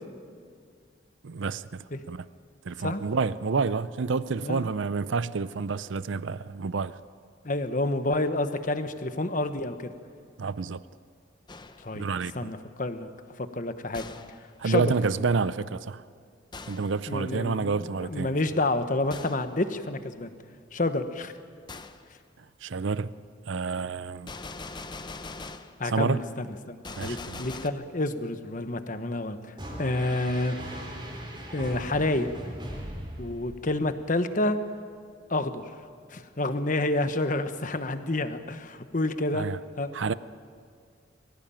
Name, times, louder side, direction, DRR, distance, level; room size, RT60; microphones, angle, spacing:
voice 1, 1.2-2.3 2.7-6.9 10.4-10.8 11.9-12.5 14.6-16.0 16.7-18.4 22.6-23.1 23.5-24.3 25.8-26.2 27.0-27.4 39.3-39.6 39.9-40.1, right 4 dB, 75° right, 0.5 m, -29 dB
voice 2, 7.4-9.9 11.8-12.0 12.3-13.1 13.4-14.1 14.6-14.9 17.1-20.3 20.7-21.3 25.8-29.4 29.8-30.6 31.5-32.3 33.2-34.6 35.3-35.6 36.1-39.5 39.8-39.9, left 2 dB, 45° left, 1.1 m, -29 dB
Gunshot gunfire, 11.5-12.0 13.9-14.5 16.5-17.0 19.1-19.5 21.7-22.0 24.3-25.8 26.8-27.7, left 3 dB, 25° left, 0.7 m, -41 dB
sound 1, 29.6-33.9, equal, 25° right, 3.8 m, -39 dB
23.5 x 15.5 x 9.0 m
head